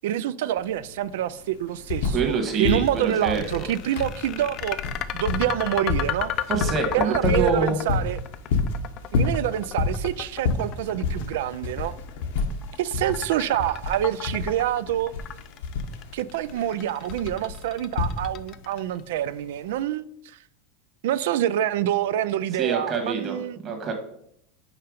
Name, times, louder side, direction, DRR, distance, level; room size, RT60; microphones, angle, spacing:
voice 1, 0.0-4.8 5.1-6.3 6.9-8.2 9.1-11.9 12.8-15.1 16.1-20.4 21.0-23.6, right 12 dB, 80° right, 0.3 m, -26 dB
sound 1, 0.6-0.7 0.9-2.4 2.6-18.6 19.7-19.8, left 4 dB, 80° left, 1.0 m, -29 dB
voice 2, 2.1-3.7 6.5-7.8 22.5-23.9, right 5 dB, 35° right, 1.5 m, -26 dB
sound 2, 2.9-19.0, left 11 dB, 40° left, 0.4 m, -34 dB
5.6 x 4.4 x 5.1 m
supercardioid pair, 130°, 0 cm